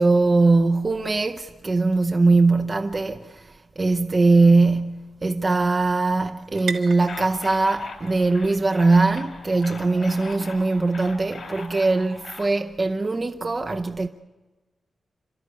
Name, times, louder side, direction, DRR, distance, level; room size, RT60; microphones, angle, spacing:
voice 1, 0.0-14.1, right 3 dB, 25° right, 0.8 m, -21 dB
sound 1, 3.6-10.9, right 5 dB, 80° right, 1.6 m, -43 dB
sound 2, 7.0-12.5, left 4 dB, 55° left, 3.1 m, -40 dB
28.0 x 13.0 x 9.5 m
wide cardioid pair, 150°, 0 cm